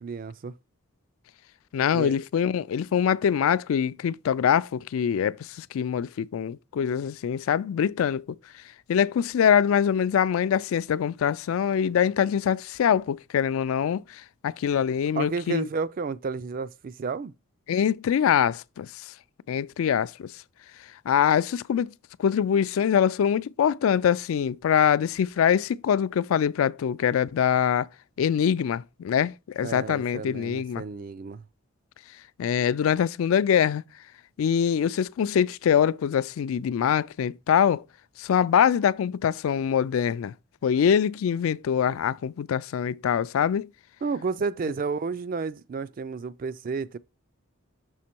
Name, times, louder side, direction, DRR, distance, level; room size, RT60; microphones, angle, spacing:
voice 1, 0.0-0.6 1.9-2.2 15.2-17.3 29.6-31.4 44.0-47.0, right 4 dB, 40° right, 0.3 m, -31 dB
voice 2, 1.7-8.2 8.9-15.7 17.7-19.1 19.5-20.3 21.1-21.9 22.2-27.9 28.2-30.8 32.4-33.8 34.4-37.8 38.2-40.3 40.6-43.7, left 8 dB, 75° left, 0.3 m, -24 dB
6.3 x 3.7 x 4.3 m
head